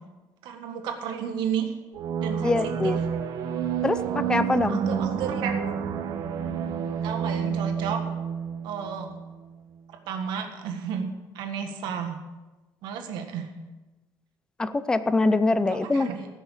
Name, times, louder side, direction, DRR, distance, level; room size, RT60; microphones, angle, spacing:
voice 1, 0.4-1.7 2.2-2.9 4.0-4.1 4.5-5.7 7.0-8.0 8.6-9.1 10.1-11.1 11.4-12.2 12.8-13.5 15.7-16.3, right 7 dB, 80° right, 4 dB, 1.6 m, -32 dB
sound 1, 1.9-9.3, right 7 dB, 60° right, 1.0 m, -29 dB
voice 2, 2.4-3.0 3.8-4.8 14.6-16.1, left 3 dB, 10° left, 13 dB, 0.5 m, -24 dB
16.0 x 6.2 x 6.6 m, 1.1 s
cardioid pair, 160°, 8 cm